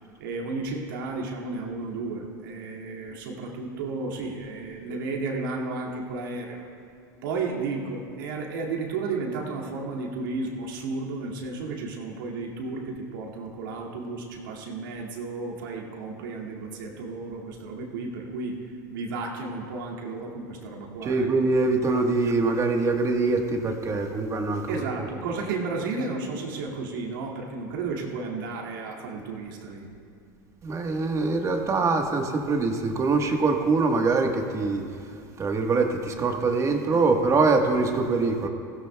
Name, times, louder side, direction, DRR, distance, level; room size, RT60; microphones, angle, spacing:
voice 1, 0.2-6.6 7.2-21.3 24.7-29.9, right 3 dB, 85° right, -1 dB, 2.2 m, -33 dB
voice 2, 21.0-24.8 30.6-34.8 35.4-38.5, right 3 dB, 30° right, 4 dB, 1.4 m, -23 dB
20.5 x 16.0 x 2.3 m, 2.5 s
supercardioid pair, 110°, 11 cm